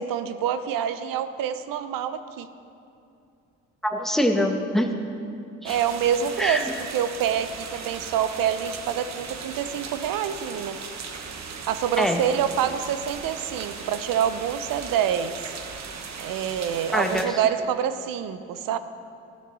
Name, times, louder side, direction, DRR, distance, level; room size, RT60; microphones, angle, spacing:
voice 1, 0.0-2.5 5.6-10.8 11.7-15.5 16.2-18.8, right 9 dB, 65° right, 12 dB, 0.8 m, -26 dB
voice 2, 3.8-4.9 5.6-5.8 6.4-6.6 12.0-12.2 16.9-17.4, equal, ahead, 3 dB, 1.6 m, -24 dB
sound 1, 5.7-17.3, right 5 dB, 45° right, 1.3 m, -38 dB
15.5 x 12.0 x 4.0 m, 2.5 s
hypercardioid pair, 55°, 37 cm